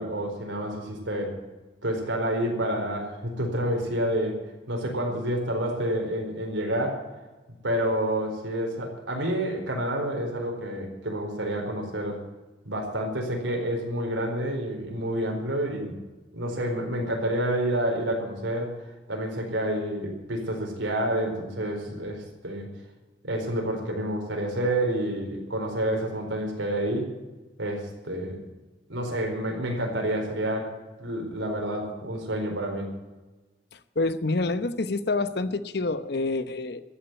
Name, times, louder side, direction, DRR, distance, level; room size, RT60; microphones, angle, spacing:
voice 1, 0.0-1.4 1.8-4.4 4.7-7.1 7.6-12.2 12.6-16.0 16.3-18.8 19.1-22.7 23.2-27.1 27.6-28.4 28.9-32.9, right 1 dB, 90° right, 1 dB, 4.4 m, -29 dB
voice 2, 34.0-36.8, left 2 dB, 60° left, 13 dB, 0.9 m, -27 dB
14.0 x 8.8 x 9.8 m, 1.2 s
head